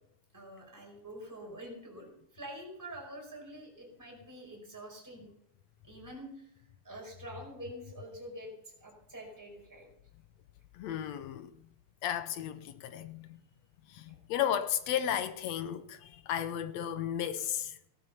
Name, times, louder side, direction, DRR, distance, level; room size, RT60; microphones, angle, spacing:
voice 1, 0.3-5.3 5.8-6.5 6.8-8.5 8.8-9.9 14.1-14.2, right 1 dB, 5° right, 4.9 m, -46 dB
voice 2, 10.7-11.5 12.0-13.4 13.9-17.8, left 10 dB, 70° left, 1.7 m, -34 dB
16.5 x 12.5 x 5.5 m
omnidirectional pair, 3.5 m